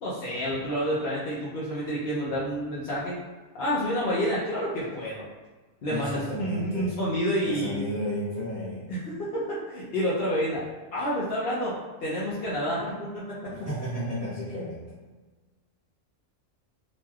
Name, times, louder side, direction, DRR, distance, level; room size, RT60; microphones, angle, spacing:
voice 1, 0.0-3.2 3.5-5.2 5.8-7.8 8.9-10.6 10.9-11.7 12.0-13.2, equal, 60° left, -8 dB, 0.7 m, -29 dB
voice 2, 5.9-7.0 7.4-8.9 13.5-14.9, equal, 40° left, -12 dB, 1.2 m, -33 dB
3.0 x 2.6 x 2.3 m, 1.3 s
omnidirectional pair, 1.4 m